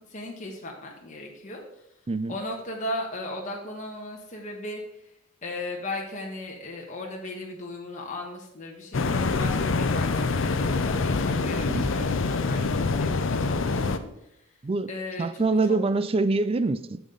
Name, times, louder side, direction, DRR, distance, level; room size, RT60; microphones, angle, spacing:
voice 1, 0.0-1.6 2.3-4.8 5.4-14.1 14.9-15.8, left 1 dB, 40° left, -1 dB, 1.3 m, -37 dB
sound 1, 8.9-14.0, left 3 dB, 65° left, 0.6 m, -25 dB
voice 2, 15.2-17.0, right 3 dB, 30° right, 13 dB, 0.4 m, -25 dB
10.0 x 7.1 x 3.9 m, 0.80 s
head